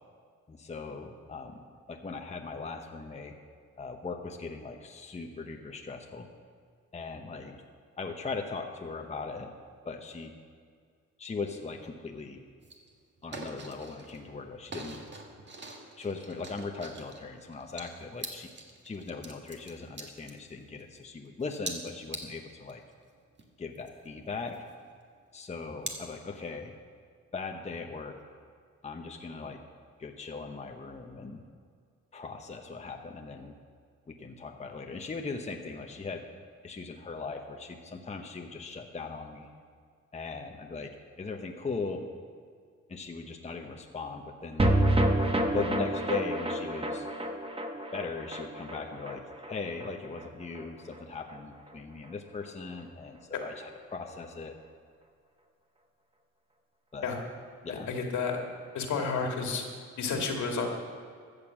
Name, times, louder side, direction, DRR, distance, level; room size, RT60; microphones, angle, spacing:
voice 1, 0.5-1.6 1.9-3.3 3.8-6.3 6.9-7.5 8.0-9.5 9.8-10.3 11.2-12.4 13.2-15.0 16.0-18.5 18.8-22.8 23.6-24.6 25.3-26.7 27.3-28.2 28.8-29.6 30.0-31.4 32.1-33.5 34.1-36.2 36.6-39.5 40.1-40.9 41.2-42.1 42.9-44.8 45.5-47.0 47.9-49.2 49.5-54.5 56.9-57.1 57.6-57.9, left 4 dB, 20° left, 3 dB, 1.0 m, -39 dB
sound 1, 12.6-12.9 13.2-14.3 14.7-21.0 21.4-22.7 23.1-23.2 23.4-25.0 25.5-26.0, right 3 dB, 35° right, 1.8 m, -43 dB
sound 2, 44.6-51.0 51.3-51.4 51.7-51.8, right 1 dB, 20° right, 1.2 m, -29 dB
voice 2, 57.7-58.4 58.7-59.6 60.0-60.7, left 5 dB, 75° left, 2 dB, 2.1 m, -31 dB
14.0 x 6.7 x 7.5 m, 2.1 s
cardioid pair, 90°, 30 cm